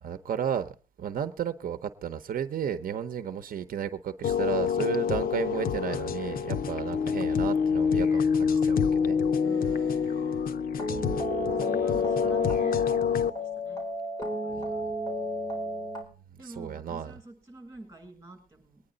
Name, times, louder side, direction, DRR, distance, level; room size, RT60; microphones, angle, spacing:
voice 1, 0.0-9.2 10.3-10.4 10.9-11.5 16.4-17.1, right 8 dB, 80° right, 10 dB, 0.8 m, -33 dB
sound 1, 4.2-13.3, left 6 dB, 85° left, 0.7 m, -26 dB
voice 2, 9.4-10.2 11.3-13.8 14.4-14.8 16.4-18.8, right 2 dB, 20° right, 3 dB, 7.5 m, -47 dB
sound 2, 10.8-16.0, equal, 25° left, 4.3 m, -33 dB
22.5 x 9.9 x 3.9 m, 0.35 s
wide cardioid pair, 165°, 14 cm